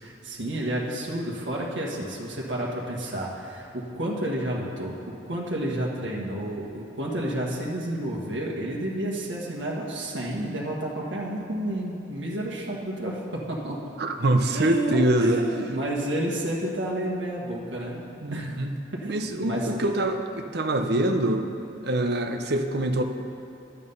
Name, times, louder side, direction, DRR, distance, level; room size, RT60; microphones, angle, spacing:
voice 1, 0.0-13.8 14.5-18.0 18.3-18.5 19.0-19.7, right 1 dB, 80° right, -3 dB, 1.5 m, -30 dB
voice 2, 14.0-15.4 18.2-18.7 19.1-21.4 21.8-23.0, right 1 dB, 60° right, 5 dB, 0.8 m, -24 dB
11.0 x 8.5 x 5.5 m, 3.0 s
head